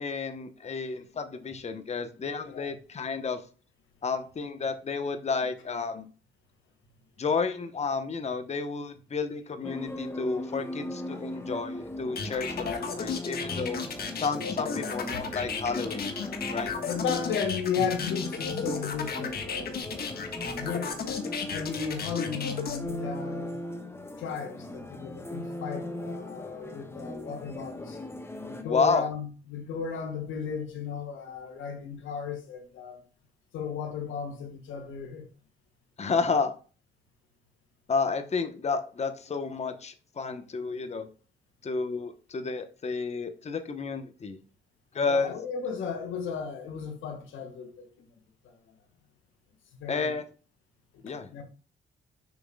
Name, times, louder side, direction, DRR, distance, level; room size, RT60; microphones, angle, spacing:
voice 1, 0.0-3.4 4.0-6.1 7.2-13.8 14.1-16.1 16.5-16.7 28.6-29.1 36.0-36.5 37.9-41.1 41.6-44.4 44.9-45.3 49.9-50.2 51.0-51.3, left 4 dB, 35° left, 1.0 m, -31 dB
sound 1, 9.6-28.6, left 1 dB, 10° left, 1.1 m, -38 dB
sound 2, 12.2-22.8, left 5 dB, 50° left, 1.5 m, -34 dB
voice 2, 16.7-20.1 20.6-23.6 24.2-28.0 28.5-33.0 33.5-35.2 45.1-48.1 48.7-48.8 49.8-50.1 50.9-51.0 51.3-51.4, left 6 dB, 80° left, 1.6 m, -35 dB
6.9 x 6.0 x 2.3 m
cardioid pair, 90°, 20 cm